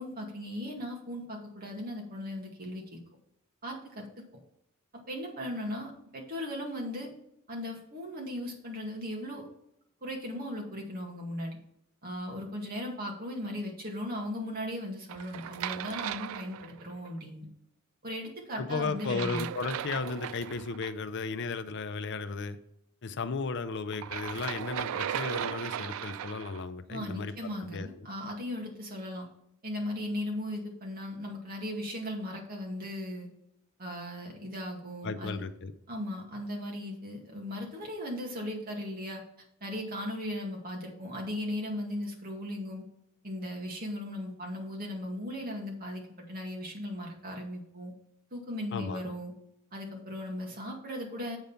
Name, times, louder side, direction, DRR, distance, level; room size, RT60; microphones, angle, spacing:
voice 1, 0.0-3.0 3.6-4.2 4.9-7.1 7.5-9.5 10.0-11.6 12.0-17.5 18.0-19.5 26.9-29.3 29.6-33.3 33.8-35.4 35.9-39.2 39.6-42.9 43.2-47.9 48.3-49.3 49.7-51.4, left 1 dB, 45° right, 0 dB, 2.1 m, -37 dB
sound 1, 15.1-17.1 19.0-20.9 23.9-26.6, right 10 dB, 80° right, 0.3 m, -37 dB
voice 2, 18.5-22.6 23.0-27.3 27.6-28.1 35.0-35.7 48.7-49.0, left 4 dB, 60° left, 10 dB, 0.6 m, -35 dB
8.1 x 5.2 x 5.7 m, 0.77 s
head